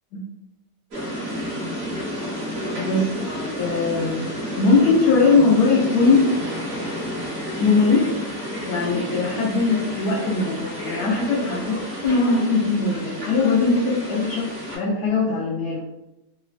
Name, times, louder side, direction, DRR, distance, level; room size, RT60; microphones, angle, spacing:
sound 1, 0.9-14.8, equal, 50° right, 0.9 m, -31 dB
voice 1, 2.8-3.1 3.6-4.3 4.6-6.4 7.6-8.1 8.7-15.8, left 4 dB, 75° left, -4 dB, 1.1 m, -20 dB
3.1 x 2.1 x 2.4 m, 0.93 s
omnidirectional pair, 1.8 m